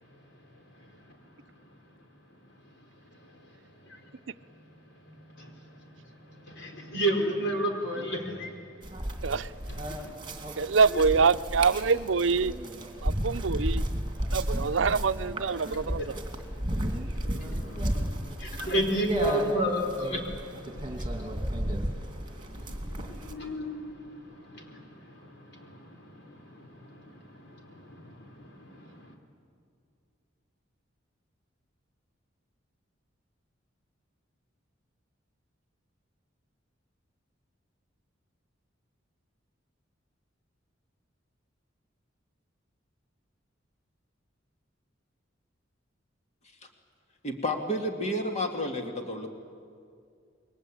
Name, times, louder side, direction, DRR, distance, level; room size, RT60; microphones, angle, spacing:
voice 1, 6.5-8.5 9.9-10.1 10.9-11.0 13.6-13.7 16.0-16.2 17.2-21.8 22.3-25.0 25.4-29.1, right 1 dB, 65° left, 2 dB, 4.7 m, -33 dB
sound 1, 8.8-23.3, equal, 25° right, 2.5 m, -33 dB
voice 2, 10.6-12.5 13.0-13.8 14.3-16.0, right 5 dB, 75° right, 13 dB, 0.6 m, -25 dB
voice 3, 47.2-49.3, left 1 dB, 35° left, 3 dB, 2.4 m, -31 dB
29.0 x 22.5 x 8.7 m, 2.3 s
head